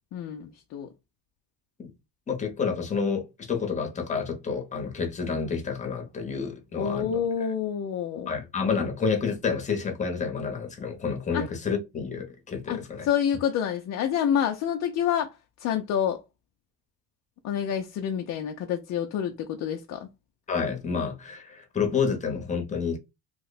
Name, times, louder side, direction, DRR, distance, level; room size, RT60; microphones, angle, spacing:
voice 1, 0.1-0.9 6.8-8.3 11.3-11.5 12.7-15.3 15.6-16.2 17.4-20.1, left 8 dB, 45° left, 0.4 m, -28 dB
voice 2, 2.3-7.2 8.3-13.1 20.5-23.0, left 5 dB, 20° left, 0.8 m, -29 dB
2.9 x 2.1 x 3.9 m
cardioid pair, 150°, 38 cm